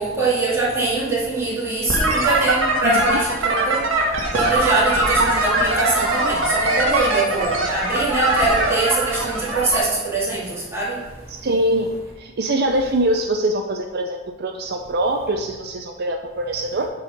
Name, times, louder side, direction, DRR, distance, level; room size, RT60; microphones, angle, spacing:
voice 1, 0.0-3.2 3.4-3.8 4.3-6.4 6.8-10.4 10.7-11.0, right 3 dB, 15° right, -8 dB, 2.8 m, -22 dB
sound 1, 1.9-9.8, right 2 dB, 75° right, 1.6 m, -21 dB
voice 2, 11.3-11.9 12.2-16.9, right 1 dB, 55° right, 4 dB, 0.6 m, -23 dB
8.3 x 4.8 x 6.0 m, 1.2 s
head